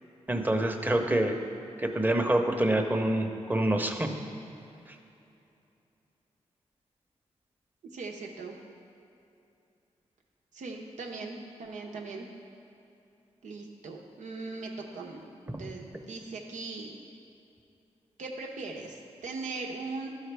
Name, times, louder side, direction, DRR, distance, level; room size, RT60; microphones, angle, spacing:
voice 1, 0.3-1.4 1.8-4.1 15.5-15.6, right 1 dB, 15° right, 4 dB, 0.9 m, -26 dB
voice 2, 7.9-8.6 10.5-12.3 13.4-17.0 18.2-20.1, right 3 dB, 85° right, 1 dB, 0.9 m, -39 dB
12.5 x 4.8 x 3.4 m, 2.7 s
cardioid pair, 45°, 12 cm